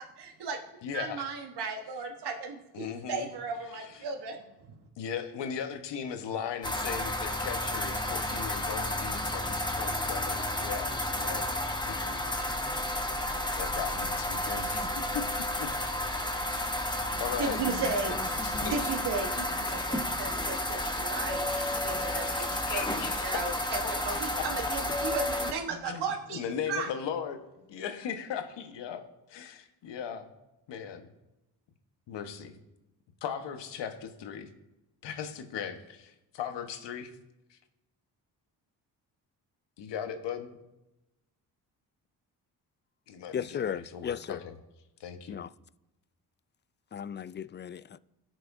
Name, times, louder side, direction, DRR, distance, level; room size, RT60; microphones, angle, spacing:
voice 1, 0.2-4.7 17.4-18.2 18.7-21.5 21.8-22.8 23.2-23.5 24.0-26.4 26.7-26.9, right 4 dB, 65° right, 1.4 m, -35 dB
voice 2, 0.8-1.3 2.7-3.3 3.7-4.1 5.0-11.4 11.9-12.2 13.5-14.9 15.1-15.2 15.6-15.7 16.5-16.7 17.2-17.6 18.3-18.9 22.7-23.4 25.8-27.4 27.7-29.0 29.3-30.3 30.7-31.1 32.1-32.6 33.2-34.5 35.0-37.1 37.5-37.6 39.8-40.6 43.1-44.2 44.4-44.5 45.0-45.4, left 8 dB, 70° left, 1.3 m, -38 dB
sound 1, 6.6-25.5, left 1 dB, 10° left, 1.3 m, -31 dB
sound 2, 16.5-16.8 17.4-17.6 18.2-18.7 19.5-19.9 20.6-24.8, left 4 dB, 50° left, 2.9 m, -49 dB
voice 3, 43.3-44.4 45.3-45.5 46.9-48.0, left 8 dB, 25° left, 0.4 m, -35 dB
17.0 x 6.2 x 2.7 m
supercardioid pair, 55°, 44 cm